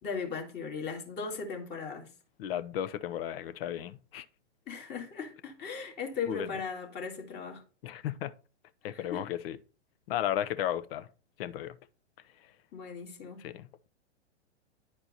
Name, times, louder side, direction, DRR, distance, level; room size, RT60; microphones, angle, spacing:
voice 1, 0.0-2.1 4.7-7.6 8.8-9.3 12.7-13.4, left 5 dB, 30° left, 2.1 m, -38 dB
voice 2, 2.4-4.3 6.3-6.5 7.8-8.3 8.8-9.6 10.1-11.1 11.4-11.8 13.4-13.9, left 11 dB, 55° left, 0.8 m, -34 dB
10.0 x 4.4 x 4.2 m
hypercardioid pair, 110°, 35 cm